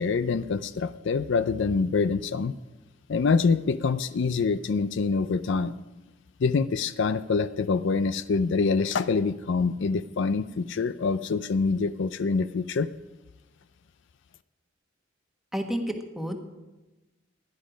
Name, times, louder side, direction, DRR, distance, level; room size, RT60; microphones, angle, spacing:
voice 1, 0.0-2.5 3.1-5.8 6.4-12.9, left 4 dB, 65° left, 13 dB, 0.4 m, -25 dB
voice 2, 15.5-16.4, equal, ahead, 3 dB, 1.4 m, -30 dB
16.5 x 10.5 x 5.1 m, 1.1 s
head